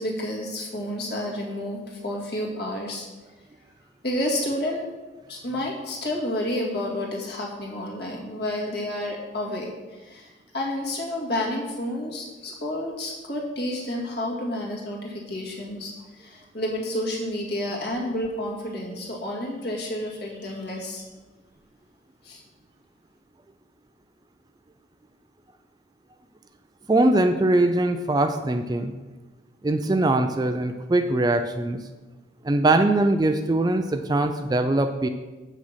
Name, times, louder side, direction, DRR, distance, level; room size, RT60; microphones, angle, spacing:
voice 1, 0.0-3.1 4.0-4.9 5.3-21.0 22.2-22.4, left 1 dB, 55° left, -2 dB, 2.0 m, -30 dB
voice 2, 26.9-28.9 29.6-31.8 32.4-35.1, right 2 dB, 20° right, 8 dB, 0.3 m, -22 dB
7.5 x 6.2 x 5.7 m, 1.2 s
head